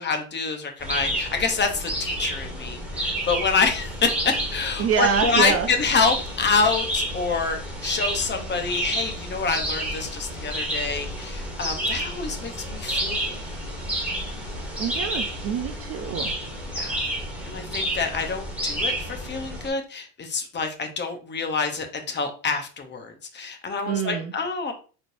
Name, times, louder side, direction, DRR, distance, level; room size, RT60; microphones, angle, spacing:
voice 1, 0.0-13.3 16.7-17.0 17.4-24.7, left 4 dB, 25° left, 6 dB, 0.7 m, -27 dB
sound 1, 0.8-19.7, right 1 dB, 5° right, 1.4 m, -30 dB
voice 2, 4.8-5.7 14.8-16.3 23.8-24.3, right 7 dB, 35° right, 6 dB, 0.4 m, -25 dB
4.1 x 3.3 x 2.6 m, 0.37 s
supercardioid pair, 105°, 47 cm